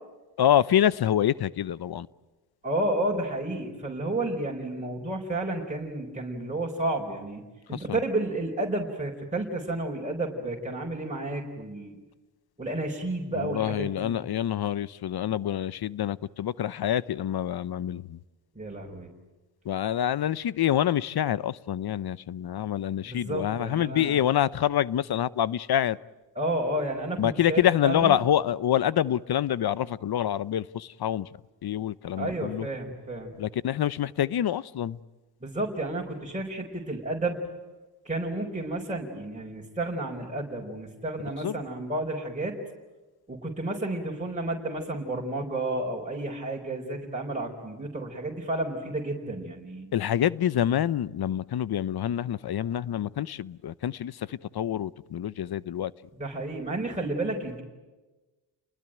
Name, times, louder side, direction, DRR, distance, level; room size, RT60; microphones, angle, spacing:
voice 1, 0.4-2.1 7.7-8.0 13.3-18.2 19.6-26.0 27.2-31.3 31.6-32.7 33.4-35.0 41.4-41.6 49.9-55.9, left 10 dB, 60° left, 0.8 m, -26 dB
voice 2, 2.6-7.4 7.7-12.0 12.6-14.1 18.5-19.1 23.0-24.2 26.3-28.2 32.2-33.4 35.4-37.4 38.0-42.5 43.3-49.9 56.2-57.6, right 2 dB, 15° right, 4.7 m, -31 dB
29.5 x 21.0 x 9.2 m
cardioid pair, 60°, 44 cm